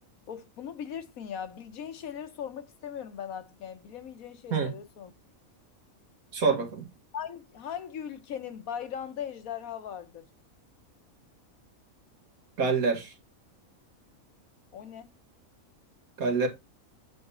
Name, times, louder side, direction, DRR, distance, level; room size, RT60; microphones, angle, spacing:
voice 1, 0.3-5.1 7.1-10.3 14.7-15.1, left 8 dB, 85° left, 1.4 m, -39 dB
voice 2, 6.3-6.9 12.6-13.1 16.2-16.5, right 4 dB, 85° right, 2.0 m, -26 dB
8.6 x 3.6 x 4.2 m
omnidirectional pair, 1.4 m